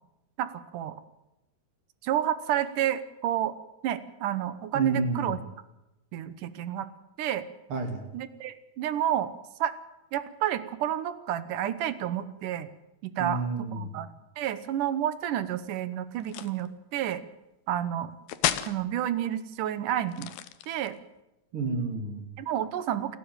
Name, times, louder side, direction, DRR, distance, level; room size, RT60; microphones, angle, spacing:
voice 1, 0.4-1.0 2.0-3.5 3.8-5.4 6.1-6.9 7.2-7.4 8.1-9.3 9.6-9.7 10.1-12.7 13.0-13.4 13.7-14.1 14.4-17.2 17.7-18.1 18.7-20.3 20.7-21.0 22.4-23.2, right 11 dB, 70° right, 14 dB, 2.4 m, -30 dB
voice 2, 4.7-5.3 7.7-8.1 13.2-13.9 21.5-22.2, right 3 dB, 40° right, 5 dB, 3.5 m, -30 dB
sound 1, 16.2-16.7 18.3-18.8 20.1-21.0, left 12 dB, 80° left, 2.8 m, -31 dB
29.0 x 10.5 x 9.0 m, 0.93 s
omnidirectional pair, 4.2 m